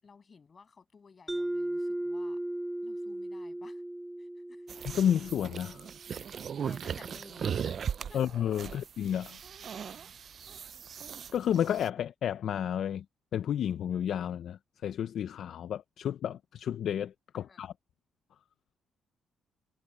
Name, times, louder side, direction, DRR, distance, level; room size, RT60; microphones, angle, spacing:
voice 1, 0.0-2.4 2.8-3.8 4.2-4.7 6.6-8.2 8.7-8.8 17.3-17.6, left 5 dB, 40° left, 7.7 m, -56 dB
Mallet percussion, 1.3-5.8, right 1 dB, 10° right, 2.2 m, -36 dB
sound 1, 4.7-11.9, right 7 dB, 55° right, 0.4 m, -38 dB
voice 2, 4.8-5.9 8.1-9.4 11.3-13.0 13.3-17.7, left 9 dB, 65° left, 0.6 m, -31 dB
cardioid pair, 90°, 0 cm